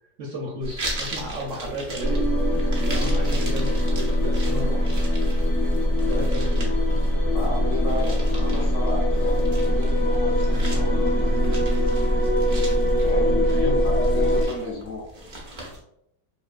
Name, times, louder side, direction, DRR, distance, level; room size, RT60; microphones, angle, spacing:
voice 1, 0.2-2.3 2.8-5.0 6.0-6.7 13.2-13.8, equal, 65° right, -2 dB, 0.8 m, -33 dB
sound 1, 0.6-15.8, right 1 dB, 80° right, 0.4 m, -38 dB
sound 2, 2.0-14.5, equal, ahead, 0.3 m, -22 dB
voice 2, 7.3-11.6 13.0-15.0, left 1 dB, 65° left, -5 dB, 0.7 m, -33 dB
3.1 x 2.7 x 2.4 m, 0.77 s
omnidirectional pair, 1.9 m